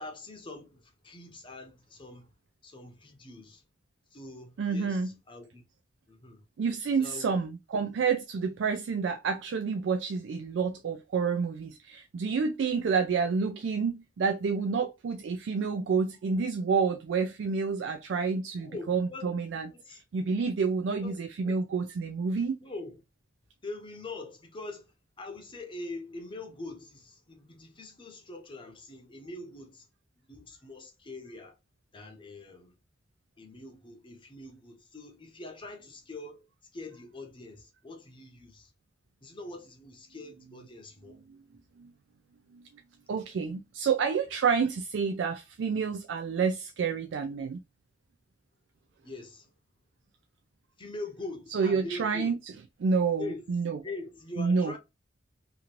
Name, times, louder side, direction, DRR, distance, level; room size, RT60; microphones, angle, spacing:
voice 1, 0.0-2.3 2.6-3.6 4.1-5.6 6.1-6.4 7.0-7.4 7.7-7.9 18.6-20.0 20.9-21.2 21.4-21.6 22.6-23.0 23.6-24.9 25.2-29.9 30.3-31.6 31.9-32.7 33.4-38.7 39.2-41.2 49.0-49.5 50.8-52.4 53.2-53.5 53.8-54.8, left 2 dB, 25° left, 0.7 m, -43 dB
voice 2, 4.6-5.1 6.6-22.6 41.8-41.9 42.5-42.6 43.1-47.6 51.5-52.4 52.8-53.8 54.4-54.7, right 5 dB, 75° right, 0.4 m, -29 dB
2.9 x 2.5 x 2.9 m
head